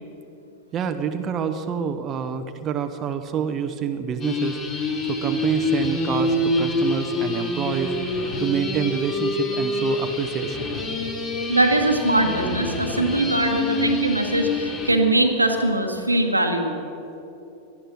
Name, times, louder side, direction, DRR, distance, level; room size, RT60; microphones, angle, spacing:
voice 1, 0.7-4.6 5.0-7.9 8.4-10.7, right 7 dB, 30° right, 6 dB, 0.9 m, -27 dB
sound 1, 4.2-14.9, left 2 dB, 30° left, 2.8 m, -26 dB
voice 2, 11.5-16.7, right 2 dB, 85° right, 4 dB, 1.4 m, -21 dB
18.0 x 12.5 x 6.3 m, 2.9 s
figure-of-eight pair, 90°, 0 cm